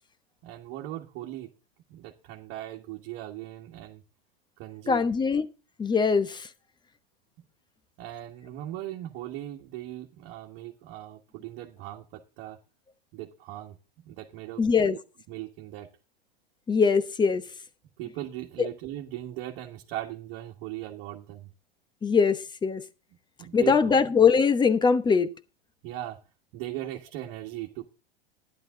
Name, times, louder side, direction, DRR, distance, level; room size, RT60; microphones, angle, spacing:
voice 1, 0.4-1.5 1.9-4.0 4.6-5.0 8.0-12.6 13.1-15.0 15.3-15.9 18.0-21.5 23.4-24.0 25.8-26.2 26.5-27.9, right 14 dB, 45° right, 1.7 m, -39 dB
voice 2, 4.9-5.5 5.8-6.5 14.6-15.0 16.7-17.4 18.6-18.7 22.0-22.8 23.5-25.3, left 5 dB, 15° left, 1.0 m, -22 dB
12.0 x 11.0 x 3.8 m
hypercardioid pair, 120°, 30 cm